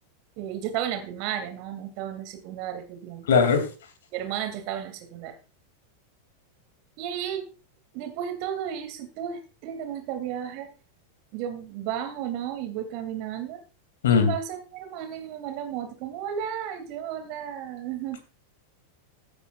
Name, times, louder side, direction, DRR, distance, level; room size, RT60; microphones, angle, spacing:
voice 1, 0.4-3.3 4.1-5.4 7.0-7.5 7.9-10.7 11.3-13.6 14.1-18.2, right 9 dB, 45° right, 8 dB, 2.4 m, -33 dB
voice 2, 3.3-3.7 14.0-14.3, left 6 dB, 60° left, 7 dB, 2.6 m, -19 dB
15.5 x 9.8 x 2.4 m, 0.34 s
figure-of-eight pair, 90°, 0 cm